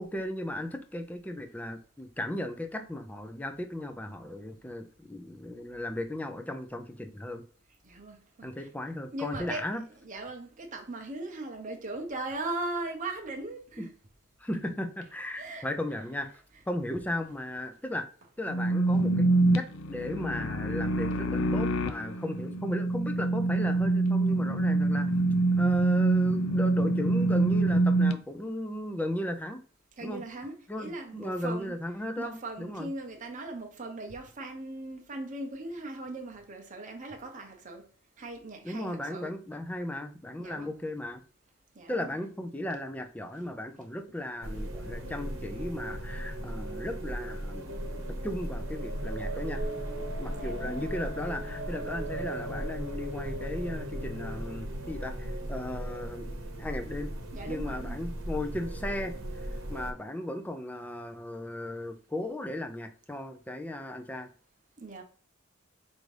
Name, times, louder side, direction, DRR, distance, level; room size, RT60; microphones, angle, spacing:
voice 1, 0.0-7.4 8.4-9.8 13.8-13.9 14.4-16.3 16.7-18.1 18.4-19.3 19.5-25.1 25.6-29.6 30.0-30.2 30.7-32.9 38.6-41.2 41.9-49.6 50.2-56.3 56.6-57.1 57.5-59.1 59.7-64.3, left 1 dB, 10° left, 0.4 m, -36 dB
voice 2, 7.8-8.7 9.1-13.9 15.3-15.7 16.1-16.6 18.2-18.3 30.0-31.8 32.2-37.8 38.2-39.3 40.4-40.8 41.8-42.2 43.3-43.5 43.8-43.9 44.5-44.7 45.6-45.7 50.3-50.9 57.3-58.0 64.8-65.0, right 2 dB, 40° right, 0.7 m, -39 dB
sound 1, 18.5-28.1, right 2 dB, 80° left, 0.4 m, -25 dB
sound 2, 44.4-59.9, right 1 dB, 80° right, 0.9 m, -36 dB
4.7 x 2.6 x 3.2 m
head